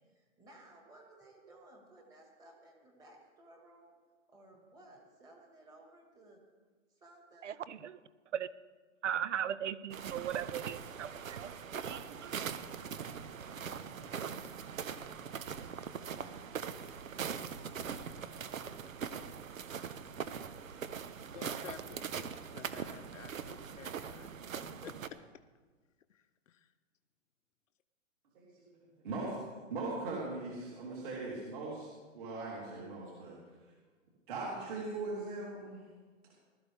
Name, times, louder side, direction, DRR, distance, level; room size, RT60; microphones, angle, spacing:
voice 1, 0.0-4.0 4.3-6.4 6.9-7.5, right 1 dB, 10° right, 1.7 m, -58 dB
voice 2, 7.4-8.0 8.3-8.5 9.0-11.5 11.8-12.4, right 9 dB, 65° right, 0.8 m, -38 dB
sound 1, 9.9-25.1, right 7 dB, 90° right, 1.1 m, -41 dB
voice 3, 21.3-24.3 24.8-25.2 26.1-26.7, left 8 dB, 70° left, 0.9 m, -52 dB
voice 4, 28.3-29.4 29.7-33.4 34.3-35.8, right 3 dB, 40° right, 3.6 m, -40 dB
20.0 x 13.0 x 3.5 m
hypercardioid pair, 165°, 39 cm